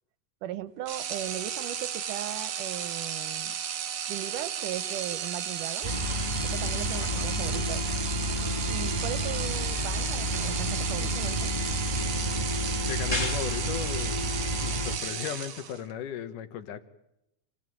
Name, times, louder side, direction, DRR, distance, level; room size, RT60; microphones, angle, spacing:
voice 1, 0.4-3.6 4.1-6.0 6.4-7.9 8.7-11.5, right 12 dB, 90° right, 14 dB, 2.6 m, -38 dB
sound 1, 0.9-15.9, right 8 dB, 70° right, 1.0 m, -34 dB
sound 2, 5.8-15.0, left 1 dB, 10° left, 2.4 m, -30 dB
voice 2, 7.0-7.7 12.9-14.3 14.6-16.8, left 9 dB, 85° left, 10 dB, 3.0 m, -37 dB
27.5 x 18.0 x 9.3 m, 0.86 s
omnidirectional pair, 3.6 m